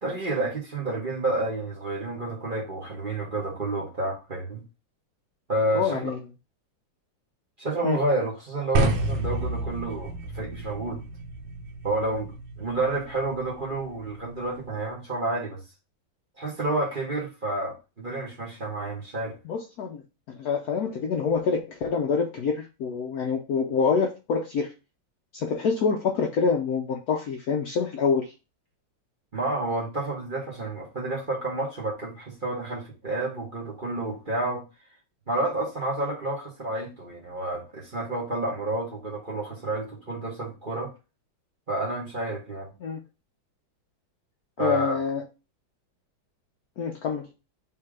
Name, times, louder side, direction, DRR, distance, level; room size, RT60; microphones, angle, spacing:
voice 1, 0.0-4.6 5.5-6.1 7.6-11.0 11.8-12.3 12.6-15.6 16.4-19.4 29.3-34.6 35.3-40.9 41.7-42.7 44.6-45.0, right 2 dB, 35° right, 1.0 m, -30 dB
voice 2, 5.7-6.2 7.8-8.0 19.4-20.0 20.3-24.7 25.3-28.3 42.8-43.0 44.6-45.2 46.8-47.3, left 5 dB, 70° left, 0.9 m, -26 dB
sound 1, 8.8-14.9, right 2 dB, 80° right, 1.4 m, -31 dB
3.6 x 2.9 x 4.7 m
omnidirectional pair, 2.1 m